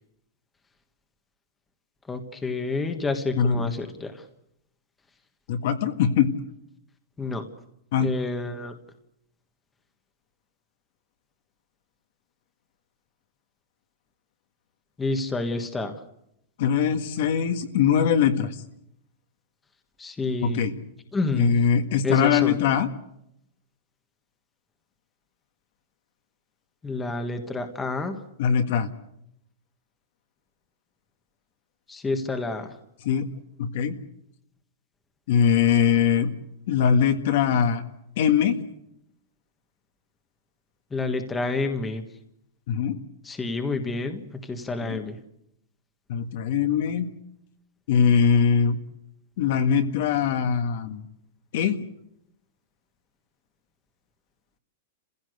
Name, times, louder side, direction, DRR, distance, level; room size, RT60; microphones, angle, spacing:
voice 1, 2.1-4.2 7.2-7.4 8.0-8.7 15.0-16.0 20.0-20.7 21.1-21.5 22.0-22.6 26.8-28.2 31.9-32.7 40.9-42.0 43.2-45.2, left 3 dB, 10° left, 6 dB, 1.5 m, -29 dB
voice 2, 3.4-3.7 5.5-6.3 7.9-8.1 16.6-18.6 20.4-20.7 21.3-22.9 28.4-28.9 33.0-33.3 33.6-34.0 35.3-36.3 36.7-37.8 38.2-38.6 42.7-42.9 44.8-45.0 46.1-47.1 47.9-48.8 49.4-51.0 51.5-51.8, left 7 dB, 55° left, 8 dB, 1.7 m, -22 dB
29.0 x 16.0 x 8.0 m, 0.79 s
supercardioid pair, 165°, 0 cm